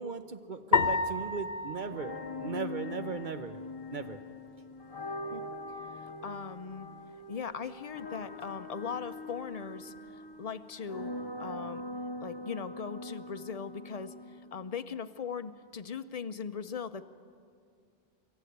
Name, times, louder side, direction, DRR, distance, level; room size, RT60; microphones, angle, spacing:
voice 1, 0.0-3.6 3.9-4.2, right 5 dB, 50° right, 9 dB, 0.9 m, -38 dB
sound 1, 0.7-3.2, left 4 dB, 80° left, 1.1 m, -31 dB
sound 2, 1.8-14.7, left 2 dB, 25° left, 1.0 m, -42 dB
voice 2, 6.0-6.9 7.3-11.1 11.4-11.8 12.2-14.1 14.5-17.0, left 6 dB, 45° left, 12 dB, 0.6 m, -39 dB
26.0 x 13.5 x 8.0 m, 2.3 s
omnidirectional pair, 1.1 m